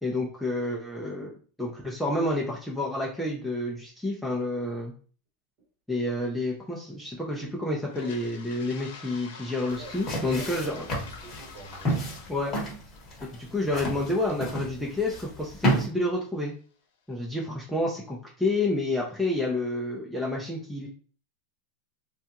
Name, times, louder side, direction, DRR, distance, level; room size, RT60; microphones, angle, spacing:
voice 1, 0.0-4.9 5.9-10.8 12.3-12.5 13.2-16.5 17.1-20.9, left 2 dB, ahead, -4 dB, 0.4 m, -29 dB
Toilet flush, 7.8-15.7, left 5 dB, 90° left, 0.7 m, -48 dB
sound 1, 9.7-15.9, equal, 20° left, 0.9 m, -31 dB
voice 2, 9.8-11.9, right 2 dB, 40° right, 0 dB, 1.2 m, -46 dB
3.4 x 2.3 x 2.8 m, 0.41 s
supercardioid pair, 175°, 0 cm